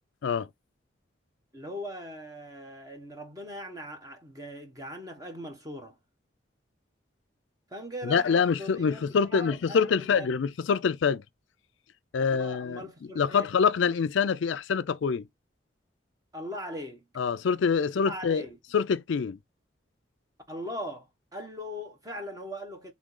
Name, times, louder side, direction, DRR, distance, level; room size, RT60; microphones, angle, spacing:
voice 1, 1.5-6.0 7.7-10.3 12.2-13.5 16.3-17.1 17.9-18.6 20.5-22.9, equal, 20° right, 1.0 m, -40 dB
voice 2, 8.0-11.2 12.1-12.9 13.2-15.3 17.2-18.4 18.7-19.4, left 6 dB, 70° left, 0.4 m, -25 dB
3.7 x 3.5 x 3.7 m
head